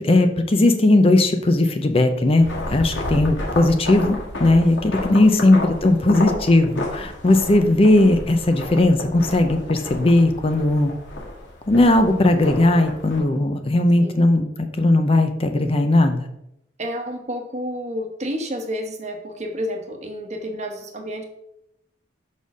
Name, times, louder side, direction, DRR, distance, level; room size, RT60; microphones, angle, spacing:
voice 1, 0.0-10.9 11.7-16.3, left 2 dB, 30° left, 7 dB, 0.5 m, -18 dB
sound 1, 2.4-13.2, left 1 dB, 80° left, 2.0 m, -31 dB
voice 2, 5.1-5.4 14.0-14.3 16.8-21.2, equal, 35° right, 4 dB, 1.0 m, -30 dB
5.4 x 4.2 x 6.1 m, 0.82 s
head